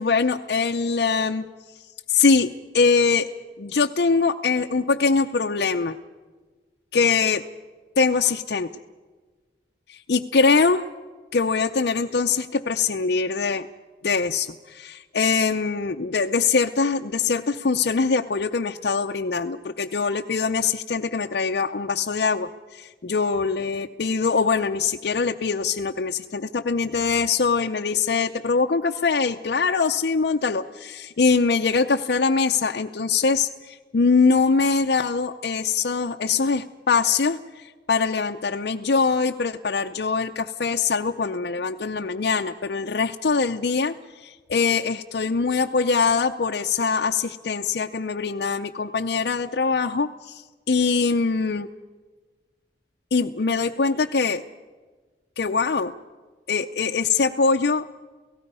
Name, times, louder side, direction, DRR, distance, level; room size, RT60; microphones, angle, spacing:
voice 1, 0.0-1.5 2.1-3.3 3.6-6.0 6.9-7.4 8.0-8.7 9.9-10.8 11.3-13.7 14.0-51.7 53.1-54.4 55.4-55.9 56.5-57.9, left 4 dB, 65° left, 3 dB, 0.6 m, -23 dB
29.0 x 17.5 x 5.5 m, 1.4 s
head